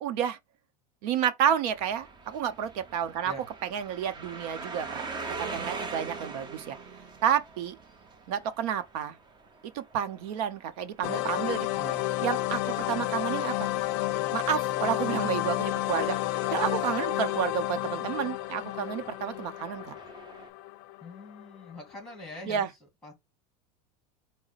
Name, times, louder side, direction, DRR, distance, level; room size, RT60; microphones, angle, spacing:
voice 1, 0.0-0.4 1.0-3.3 3.7-5.0 5.5-6.8 7.2-7.8 8.3-9.2 9.7-11.7 12.2-13.7 14.3-16.2 16.5-19.9 22.5-22.7, right 9 dB, 70° right, 0.8 m, -30 dB
sound 1, 1.7-20.5, right 4 dB, 20° right, 0.7 m, -44 dB
sound 2, 11.0-21.7, left 16 dB, 50° left, 0.5 m, -31 dB
voice 2, 21.0-22.7 23.0-23.2, left 1 dB, ahead, 2.1 m, -43 dB
4.8 x 2.1 x 4.0 m
supercardioid pair, 135°, 21 cm